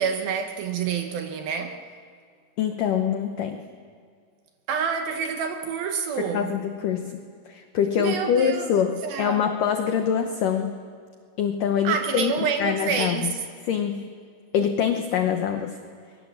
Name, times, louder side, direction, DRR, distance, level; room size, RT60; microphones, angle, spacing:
voice 1, 0.0-1.8 4.7-6.6 8.0-9.5 11.8-13.4, right 6 dB, 70° right, 5 dB, 2.5 m, -28 dB
voice 2, 2.6-3.6 6.2-7.2 7.5-10.7 11.4-12.3 12.6-13.3 13.7-14.1 14.5-15.8, left 8 dB, 80° left, 6 dB, 1.9 m, -24 dB
25.0 x 23.5 x 7.4 m, 2.2 s
omnidirectional pair, 5.2 m